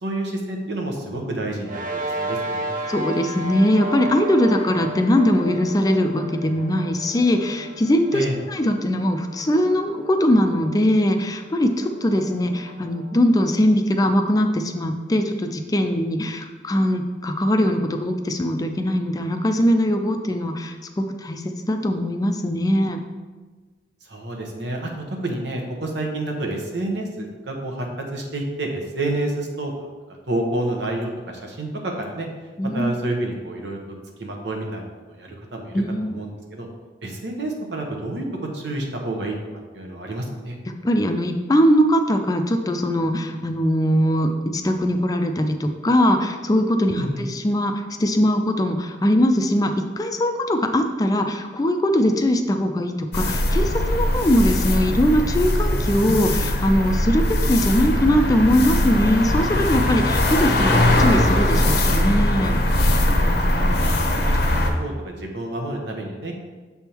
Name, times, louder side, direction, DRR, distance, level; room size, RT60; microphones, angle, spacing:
voice 1, 0.0-2.7 8.1-8.4 24.0-29.7 30.3-32.3 32.7-33.8 34.2-36.7 37.0-38.2 38.5-39.3 39.7-40.6 46.9-47.2 63.1-66.3, right 1 dB, 85° right, 1 dB, 1.1 m, -29 dB
sound 1, 1.6-14.4, right 2 dB, 50° right, 0.5 m, -34 dB
voice 2, 2.9-23.0 32.6-32.9 35.7-36.1 40.7-47.7 48.0-63.4, equal, 20° left, 5 dB, 0.4 m, -21 dB
sound 2, 53.1-64.7, left 1 dB, 65° left, 0.8 m, -20 dB
6.9 x 3.5 x 4.5 m, 1.3 s
head